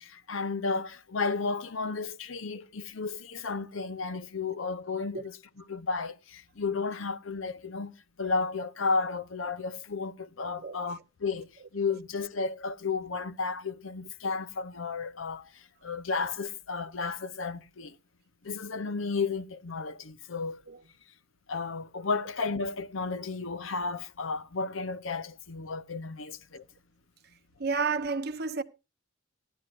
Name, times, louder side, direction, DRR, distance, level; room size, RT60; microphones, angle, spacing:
voice 1, 0.0-18.0 18.4-20.6 21.5-26.6, left 4 dB, 70° left, 0.8 m, -33 dB
voice 2, 27.6-28.6, right 4 dB, 50° right, 0.9 m, -30 dB
16.5 x 11.5 x 2.5 m
head